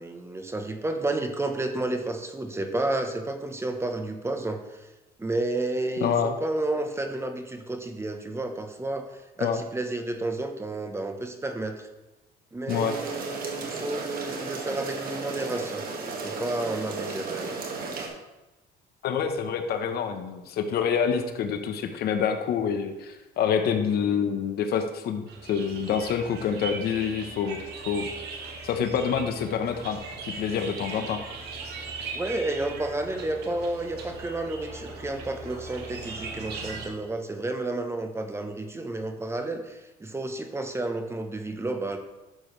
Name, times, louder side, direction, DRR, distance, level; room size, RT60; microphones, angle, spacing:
voice 1, 0.0-4.9 5.2-9.1 9.4-11.9 12.5-17.6 32.1-42.0, right 2 dB, 15° right, 6 dB, 0.9 m, -31 dB
voice 2, 6.0-6.4 9.4-9.6 12.7-13.0 19.0-27.6 27.8-28.1 28.6-30.0 30.2-31.2, left 7 dB, 70° left, 7 dB, 1.0 m, -27 dB
Raining on roof, 12.7-18.1, right 4 dB, 60° right, 1.8 m, -34 dB
sound 1, 25.3-36.9, right 4 dB, 80° right, 1.7 m, -39 dB
11.0 x 6.9 x 3.2 m, 1.1 s
cardioid pair, 110°, 17 cm